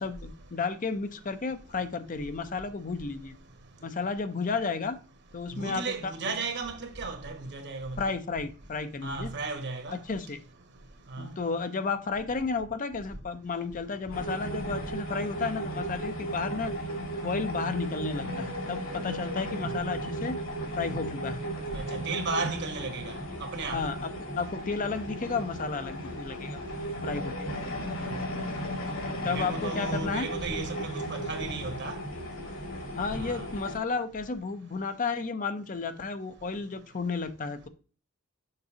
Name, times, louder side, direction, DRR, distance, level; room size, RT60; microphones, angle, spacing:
voice 1, 0.0-3.3 3.8-5.0 5.3-6.1 8.0-9.3 10.0-10.4 11.2-16.7 17.2-20.4 20.7-21.4 23.7-26.6 27.0-27.5 29.2-30.3 32.9-37.7, left 4 dB, 40° left, 0.6 m, -32 dB
voice 2, 5.5-8.2 9.0-10.0 11.1-11.3 21.7-23.8 28.0-28.2 29.2-32.0 33.1-33.5, right 3 dB, 55° right, 1.3 m, -35 dB
sound 1, 14.1-33.8, right 1 dB, 65° left, 2.1 m, -35 dB
6.7 x 5.7 x 2.8 m
head